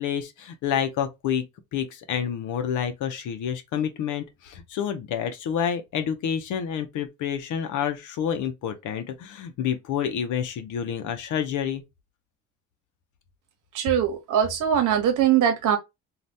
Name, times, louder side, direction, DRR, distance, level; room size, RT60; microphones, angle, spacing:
voice 1, 0.0-1.4 1.7-11.8, left 8 dB, 80° left, 0.7 m, -28 dB
voice 2, 13.7-15.8, right 9 dB, 85° right, 1.0 m, -21 dB
2.7 x 2.4 x 3.3 m
cardioid pair, 90°, 30 cm